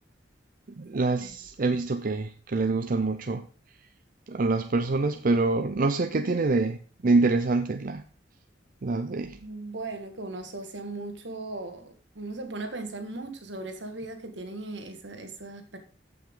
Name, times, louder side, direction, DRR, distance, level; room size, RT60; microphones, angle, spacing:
voice 1, 0.8-3.5 4.3-6.8 7.0-8.0 8.8-9.4, right 3 dB, 50° right, 0.5 m, -25 dB
voice 2, 9.4-15.8, right 2 dB, 80° right, 1.8 m, -38 dB
14.5 x 5.8 x 3.8 m
head